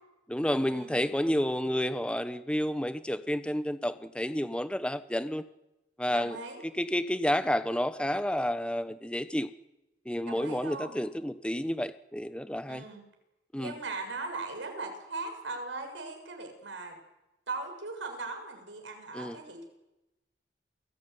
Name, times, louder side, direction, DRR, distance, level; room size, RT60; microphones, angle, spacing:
voice 1, 0.3-5.4 6.0-6.4 6.6-9.5 10.0-12.8 13.5-13.7 19.1-19.4, equal, 5° left, 12 dB, 1.0 m, -30 dB
voice 2, 6.1-6.6 10.3-10.9 12.7-13.0 13.6-17.0 17.5-19.6, right 3 dB, 90° right, 4 dB, 7.2 m, -39 dB
28.5 x 19.5 x 9.7 m, 0.96 s
head